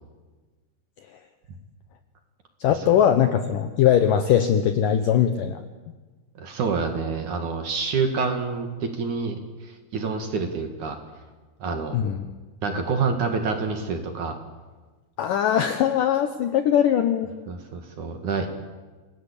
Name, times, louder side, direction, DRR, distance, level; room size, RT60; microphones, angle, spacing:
voice 1, 2.6-5.6 11.9-12.3 15.2-17.3, left 9 dB, 75° left, 8 dB, 2.0 m, -21 dB
voice 2, 6.4-11.0 11.6-12.0 12.6-14.4 17.5-18.5, right 4 dB, 50° right, 5 dB, 2.9 m, -27 dB
28.5 x 20.0 x 8.6 m, 1.3 s
omnidirectional pair, 5.2 m